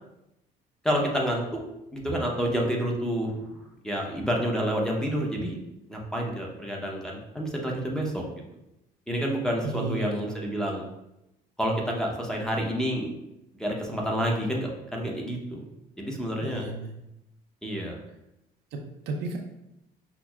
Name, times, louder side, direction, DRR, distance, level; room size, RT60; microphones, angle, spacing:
voice 1, 0.8-1.6 1.9-3.5 3.8-5.6 5.9-8.3 9.1-10.8 11.6-13.1 13.5-15.6 16.0-16.6 17.6-18.0, equal, 5° left, -1 dB, 0.7 m, -29 dB
voice 2, 9.6-10.1 16.4-16.9 18.7-19.4, right 3 dB, 85° right, 2 dB, 0.6 m, -33 dB
5.8 x 2.0 x 2.3 m, 0.88 s
cardioid pair, 110°, 17 cm